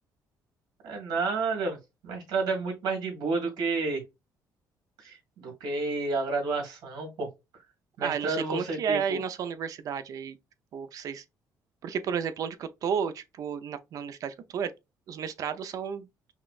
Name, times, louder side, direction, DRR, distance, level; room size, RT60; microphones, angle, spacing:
voice 1, 0.8-1.8 2.0-4.0 5.0-7.3 8.0-9.2, right 3 dB, 75° right, 1.7 m, -30 dB
voice 2, 8.0-10.4 10.7-11.2 11.8-14.7 15.1-16.1, right 7 dB, 55° right, 0.5 m, -32 dB
5.7 x 2.1 x 2.3 m
cardioid pair, 125°, 7 cm